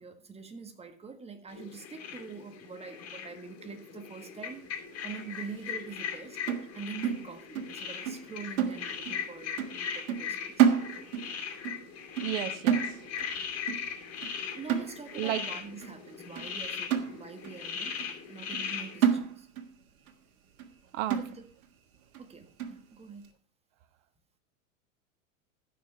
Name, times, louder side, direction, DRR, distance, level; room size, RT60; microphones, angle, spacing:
voice 1, 0.0-4.7 5.0-11.1 14.5-19.5 21.2-21.4 22.2-23.3, right 5 dB, 15° right, 7 dB, 1.6 m, -45 dB
sound 1, 1.5-19.1, left 7 dB, 35° left, 3.6 m, -39 dB
sound 2, 6.5-7.8 8.1-8.3 8.6-9.3 9.6-9.8 10.1-11.3 11.6-11.9 12.2-13.3 13.7-13.9 14.2-14.4 14.7-15.3 15.8-15.9 16.4-16.5 16.9-17.6 18.0-18.1 18.5-18.7 19.0-19.7 20.1-20.2 20.6-20.7 21.1-21.6 22.1-22.2 22.6-22.8, right 8 dB, 85° right, 1.6 m, -29 dB
voice 2, 12.2-12.8 15.1-15.4 20.9-21.2, right 13 dB, 60° right, 10 dB, 1.3 m, -32 dB
14.0 x 5.9 x 5.7 m, 0.43 s
hypercardioid pair, 110°, 41 cm